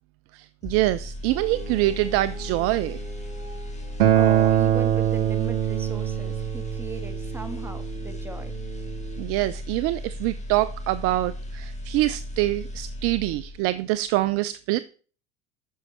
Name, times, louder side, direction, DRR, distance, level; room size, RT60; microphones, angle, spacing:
voice 1, 0.3-3.0 9.2-14.8, right 17 dB, 40° right, 0.4 m, -25 dB
sound 1, 0.6-13.8 14.1-14.3, left 1 dB, 20° left, 2.3 m, -36 dB
Bowed string instrument, 1.3-4.5, right 1 dB, 90° right, 2.2 m, -42 dB
Acoustic guitar, 4.0-9.2, right 11 dB, 60° right, 1.1 m, -24 dB
voice 2, 4.1-8.5, right 3 dB, 5° right, 1.6 m, -38 dB
9.3 x 6.3 x 4.3 m
figure-of-eight pair, 70°, 35 cm